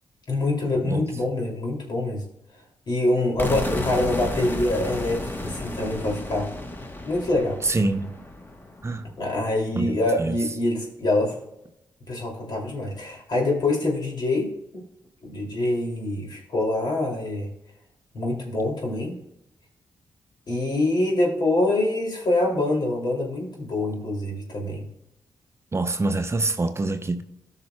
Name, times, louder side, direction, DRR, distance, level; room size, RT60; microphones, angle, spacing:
voice 1, 0.3-2.2 2.9-6.5 7.1-7.6 9.2-11.4 12.1-14.8 15.2-17.5 18.1-19.2 20.5-24.8, left 2 dB, 60° left, 2.7 m, -25 dB
sound 1, 3.4-9.3, left 1 dB, 25° left, 1.2 m, -32 dB
voice 2, 7.6-8.1 8.8-9.1 9.7-10.4 25.7-27.2, right 2 dB, 35° right, 0.7 m, -25 dB
14.0 x 5.8 x 2.3 m
supercardioid pair, 45°, 8 cm